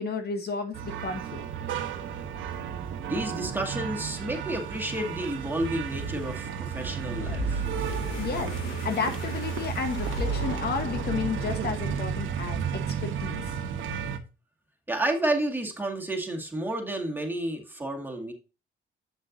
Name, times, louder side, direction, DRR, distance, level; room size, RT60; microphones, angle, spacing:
voice 1, 0.0-1.8 8.2-8.5 8.8-13.6, left 5 dB, 55° left, 1.3 m, -32 dB
sound 1, 0.7-14.2, right 7 dB, 80° right, 1.0 m, -33 dB
voice 2, 3.1-7.6 8.1-8.3 14.9-18.3, right 1 dB, 10° right, 2.0 m, -31 dB
sound 2, 7.0-12.1, right 2 dB, 80° left, 2.4 m, -34 dB
7.9 x 6.2 x 2.6 m
cardioid pair, 90°, 20 cm